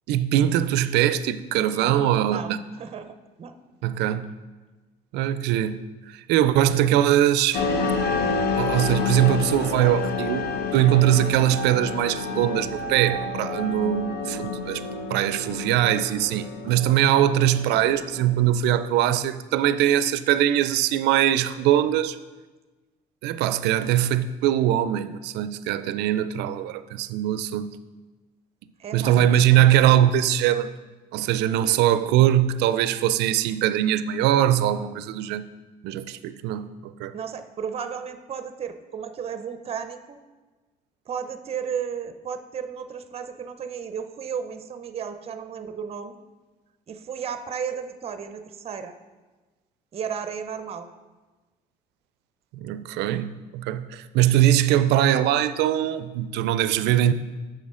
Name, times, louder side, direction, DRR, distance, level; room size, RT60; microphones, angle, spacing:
voice 1, 0.1-2.6 3.8-4.3 5.1-5.9 6.1-7.6 8.6-14.8 15.1-22.2 23.2-27.8 28.9-30.7 31.1-35.5 35.8-37.1 52.5-57.1, right 11 dB, 85° right, 0.4 m, -22 dB
voice 2, 2.8-3.5 28.8-29.7 37.1-40.2 41.1-46.2 46.9-48.9 49.9-50.9, right 7 dB, 35° right, 0.6 m, -34 dB
sound 1, 7.5-18.3, left 4 dB, 70° left, 0.7 m, -30 dB
Wind instrument woodwind instrument, 8.0-14.1, left 2 dB, 10° left, 0.6 m, -34 dB
7.6 x 6.2 x 3.7 m
cardioid pair, 110°, 17 cm